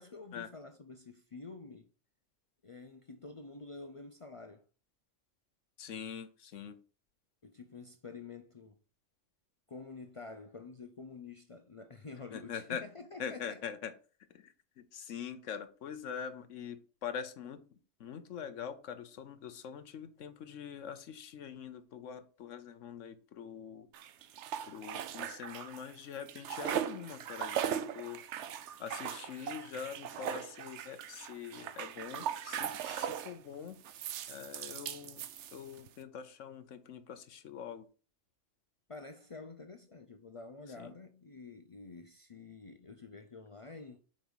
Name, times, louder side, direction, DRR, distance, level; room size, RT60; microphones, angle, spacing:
voice 1, 0.0-1.9 2.6-4.6 7.4-8.8 9.7-13.6 38.9-44.0, left 4 dB, 45° left, 0.4 m, -48 dB
voice 2, 5.8-6.8 12.3-12.8 13.2-13.9 14.3-17.6 18.0-23.9 24.6-28.2 28.8-33.8 34.3-35.3 35.5-37.9 40.8-40.9, left 7 dB, 80° left, 1.1 m, -44 dB
sound 1, 23.9-25.9 26.2-33.4 33.8-35.9, right 9 dB, 75° right, 0.9 m, -39 dB
5.3 x 4.7 x 6.2 m
omnidirectional pair, 1.3 m